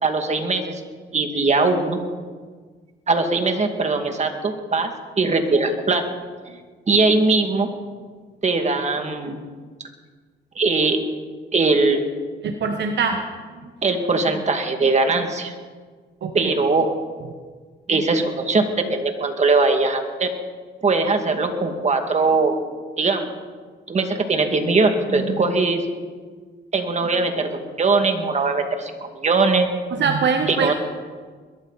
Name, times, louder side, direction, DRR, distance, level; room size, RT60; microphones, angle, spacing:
voice 1, 0.0-0.8 1.1-2.0 3.1-4.9 5.2-6.0 6.5-6.6 6.9-7.7 8.4-9.4 10.6-11.0 11.5-12.0 13.8-15.5 16.3-16.9 17.9-20.3 20.8-22.5 23.0-23.3 23.9-25.8 26.7-29.7 30.5-30.7, right 3 dB, 35° right, 5 dB, 2.2 m, -20 dB
voice 2, 12.4-13.2 13.6-13.7 16.2-16.5 29.9-30.7, right 5 dB, 65° right, 5 dB, 1.3 m, -23 dB
21.5 x 13.5 x 4.2 m, 1.5 s
cardioid pair, 90°, 20 cm